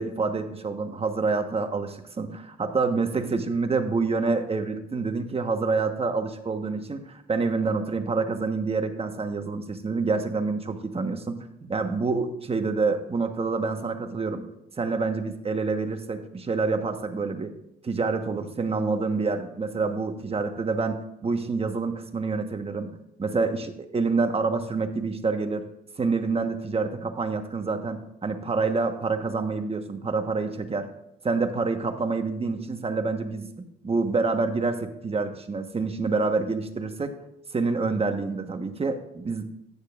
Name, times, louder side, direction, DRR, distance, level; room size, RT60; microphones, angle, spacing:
voice 1, 0.0-11.4 11.7-14.4 14.8-17.5 17.8-22.9 23.2-25.6 26.0-30.9 31.2-37.2 37.5-39.5, right 4 dB, 30° right, 6 dB, 1.2 m, -27 dB
14.0 x 9.9 x 2.5 m, 0.79 s
cardioid pair, 90°, 20 cm